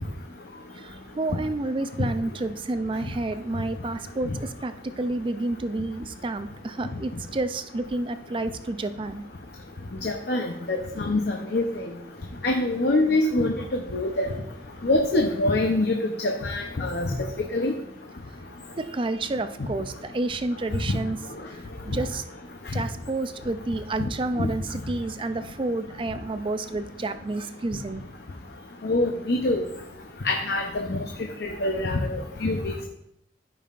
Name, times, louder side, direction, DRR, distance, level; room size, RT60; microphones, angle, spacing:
voice 1, 0.7-9.2 18.8-21.2 21.5-22.2 22.7-28.0, right 2 dB, 30° right, 10 dB, 0.4 m, -30 dB
voice 2, 10.0-11.7 12.4-14.3 14.8-16.0 16.2-17.3 17.5-17.7 20.9-21.0 24.4-24.5 28.8-29.6 30.2-30.6 30.9-31.0 31.6-32.9, left 2 dB, 60° left, 2 dB, 0.7 m, -24 dB
13.5 x 5.5 x 2.5 m, 0.81 s
head